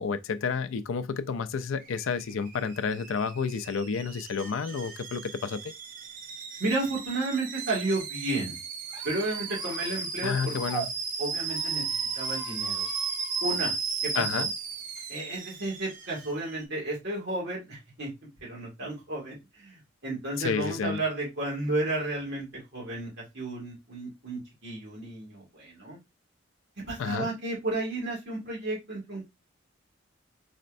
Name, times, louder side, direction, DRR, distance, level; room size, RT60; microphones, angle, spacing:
voice 1, 0.0-5.7 10.2-10.9 14.1-14.5 20.4-21.0 27.0-27.3, left 5 dB, 80° left, 0.4 m, -30 dB
Alarm / Boiling, 1.8-16.6, right 5 dB, 45° right, 0.6 m, -35 dB
voice 2, 6.6-8.6 9.0-10.5 11.2-11.8 12.2-12.9 13.4-13.8 14.0-14.5 15.1-18.1 18.4-26.0 26.9-29.3, right 2 dB, 60° right, 2.1 m, -32 dB
Squeak, 8.9-10.9 11.4-13.5, right 5 dB, 20° right, 1.3 m, -42 dB
4.2 x 3.1 x 2.6 m
head